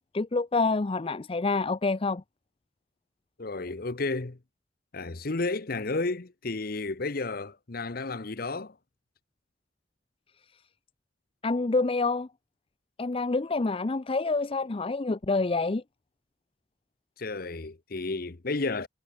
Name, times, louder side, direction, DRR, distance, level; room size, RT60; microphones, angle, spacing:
voice 1, 0.1-2.2 11.4-12.3 13.0-15.8, left 3 dB, 30° left, 0.5 m, -27 dB
voice 2, 3.4-4.4 4.9-8.7 17.2-18.9, left 3 dB, 50° left, 0.9 m, -32 dB
head